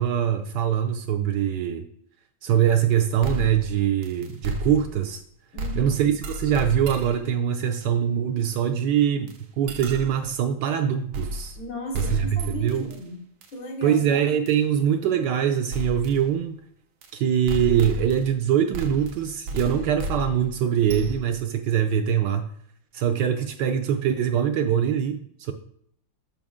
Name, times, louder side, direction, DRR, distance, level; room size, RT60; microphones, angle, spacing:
voice 1, 0.0-1.8 2.4-5.2 5.8-9.3 9.6-11.6 12.0-12.9 13.8-16.6 17.1-22.4 22.9-25.5, right 9 dB, 75° right, 7 dB, 1.1 m, -23 dB
sound 1, 3.2-5.2 5.6-7.3 9.3-9.4 9.7-10.3 11.1-11.7 11.9-13.0 13.4-13.5 14.5-14.6 15.7-16.2 17.0-17.1 17.5-18.4 18.7-21.4, equal, 90° right, 1.7 m, -33 dB
voice 2, 5.5-6.0 11.6-13.2 13.5-14.0, equal, 75° left, 1 dB, 2.1 m, -36 dB
7.4 x 5.2 x 3.6 m, 0.67 s
omnidirectional pair, 2.2 m